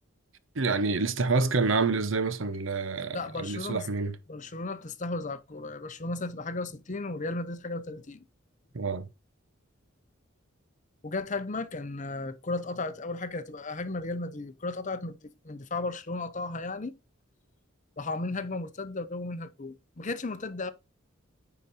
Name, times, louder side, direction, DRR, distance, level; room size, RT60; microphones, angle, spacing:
voice 1, 0.6-4.2 8.7-9.1, right 4 dB, 65° right, 0.8 m, -27 dB
voice 2, 3.1-3.9 4.3-8.2 11.0-17.0 18.0-20.7, left 3 dB, 35° left, 0.8 m, -35 dB
9.8 x 4.9 x 4.1 m
head